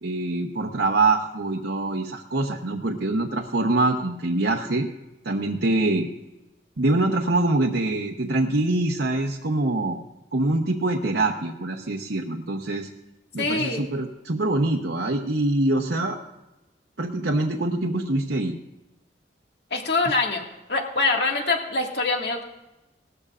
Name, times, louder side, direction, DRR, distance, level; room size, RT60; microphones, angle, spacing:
voice 1, 0.0-4.9 5.2-6.1 6.8-10.0 10.3-12.9 13.3-16.2 17.0-18.6, right 2 dB, 80° right, 1 dB, 1.0 m, -24 dB
voice 2, 13.4-13.8 19.7-22.4, left 3 dB, 65° left, 1 dB, 1.9 m, -24 dB
18.5 x 13.5 x 2.5 m, 0.99 s
head